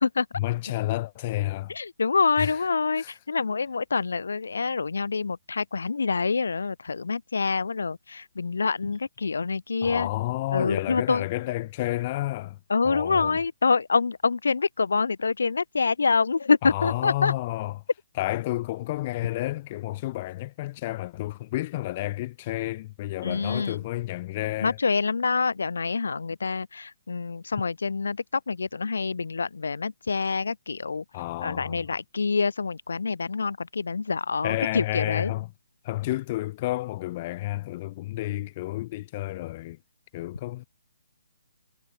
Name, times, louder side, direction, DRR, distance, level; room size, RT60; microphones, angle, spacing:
voice 1, 0.4-1.7 2.4-2.6 3.0-3.1 9.8-12.6 12.8-13.4 16.6-17.8 18.2-24.8 31.1-32.0 34.4-35.5 35.8-39.8 40.1-40.6, left 17 dB, 25° left, 0.6 m, -30 dB
voice 2, 1.7-10.1 10.5-11.3 12.7-17.3 23.2-23.8 24.6-31.0 31.4-35.3, left 4 dB, 85° left, 1.5 m, -26 dB
hypercardioid pair, 170°, 0 cm